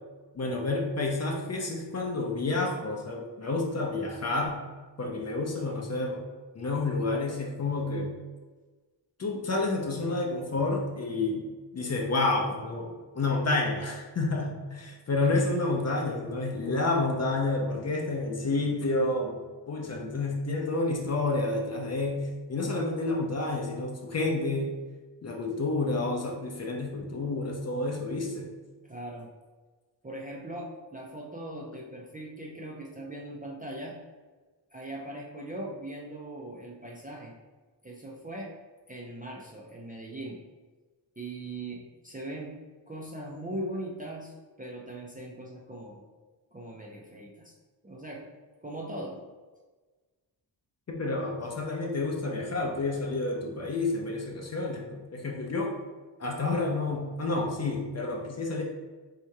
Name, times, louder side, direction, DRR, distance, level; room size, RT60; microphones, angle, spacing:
voice 1, 0.3-4.6 5.0-6.2 6.5-8.1 9.2-11.5 11.7-19.4 19.7-24.8 25.2-28.5 50.9-55.8 56.2-58.6, left 2 dB, 35° left, 1 dB, 0.5 m, -29 dB
voice 2, 28.8-29.3 30.0-34.0 34.7-37.3 37.8-38.5 38.9-40.4 41.2-42.5 42.9-44.3 44.6-46.0 46.5-47.5 47.8-48.3 48.6-49.2, right 1 dB, 20° right, -3 dB, 0.4 m, -40 dB
3.6 x 2.8 x 4.5 m, 1.3 s
wide cardioid pair, 180°, 45 cm